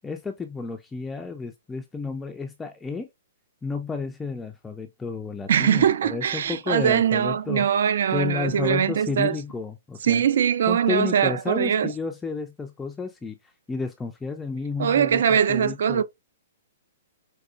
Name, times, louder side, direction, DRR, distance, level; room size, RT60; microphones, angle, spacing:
voice 1, 0.0-3.1 3.6-7.7 8.1-10.2 10.7-13.4 13.7-16.0, left 4 dB, 10° left, 0.3 m, -31 dB
voice 2, 5.5-9.4 10.0-11.9 14.8-16.0, right 8 dB, 70° right, 0.4 m, -22 dB
4.8 x 2.3 x 2.4 m
hypercardioid pair, 155°, 0 cm